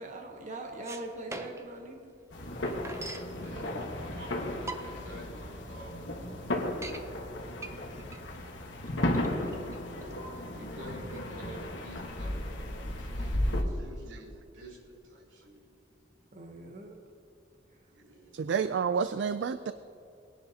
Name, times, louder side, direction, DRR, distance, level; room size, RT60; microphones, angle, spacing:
voice 1, 0.0-2.1 16.3-17.0, right 2 dB, 40° right, 2 dB, 1.0 m, -42 dB
sound 1, 0.8-1.8 2.1-2.2 2.4-3.3 4.1-4.2 4.5-5.2 5.6-5.7 6.0-6.1 6.5-7.0 7.6-10.5, right 2 dB, 15° right, 0.6 m, -42 dB
sound 2, 2.3-13.6, left 1 dB, 70° left, 1.4 m, -35 dB
voice 2, 3.4-6.1 9.9-15.7 17.9-18.5, right 1 dB, 90° right, -3 dB, 2.9 m, -49 dB
voice 3, 18.3-19.7, right 6 dB, 65° right, 12 dB, 0.3 m, -29 dB
20.0 x 10.5 x 2.8 m, 2.6 s
head